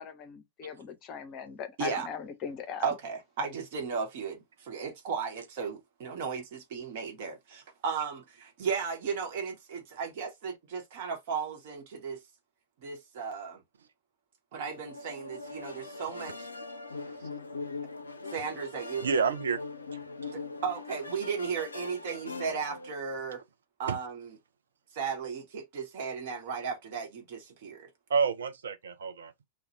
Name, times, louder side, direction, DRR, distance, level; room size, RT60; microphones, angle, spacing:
voice 1, 0.0-2.8, left 7 dB, 35° left, 0.6 m, -39 dB
voice 2, 2.8-12.2 12.8-13.6 14.5-16.5 18.3-19.1 20.3-23.4 23.8-24.3 24.9-27.9, right 6 dB, 50° right, 1.0 m, -35 dB
sound 1, 14.6-22.9, left 4 dB, 75° left, 0.4 m, -41 dB
voice 3, 16.9-17.3 19.0-19.6 20.2-20.4 23.9-24.0 28.1-29.3, right 5 dB, 65° right, 0.5 m, -29 dB
2.3 x 2.2 x 3.0 m
figure-of-eight pair, 90°, 0 cm